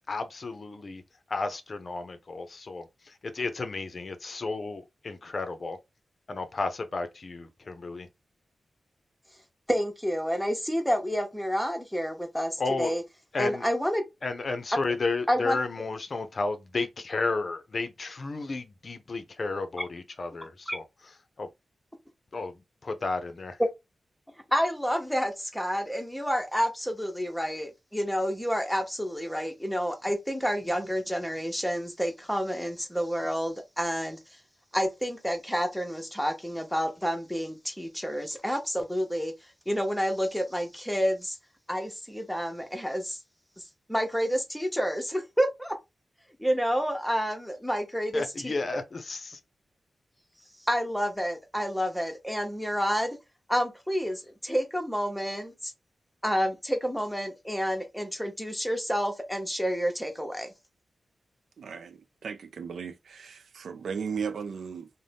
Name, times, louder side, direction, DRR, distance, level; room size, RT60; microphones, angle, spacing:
voice 1, 0.1-1.0 1.3-5.8 6.3-8.1 12.6-12.9 13.3-13.6 14.2-20.8 21.4-21.5 22.3-22.5 22.8-23.6 48.1-49.4, left 3 dB, 50° left, 0.5 m, -32 dB
voice 2, 9.7-13.0 13.4-14.0 15.3-15.6 20.7-20.8 24.5-34.4 34.7-39.3 39.7-41.4 41.7-43.2 43.9-45.7 46.4-48.5 50.6-53.2 53.5-55.7 56.2-60.5, equal, 5° left, 0.8 m, -29 dB
voice 3, 61.6-64.9, right 6 dB, 85° right, 0.3 m, -36 dB
2.6 x 2.1 x 3.3 m
cardioid pair, 75°, 0 cm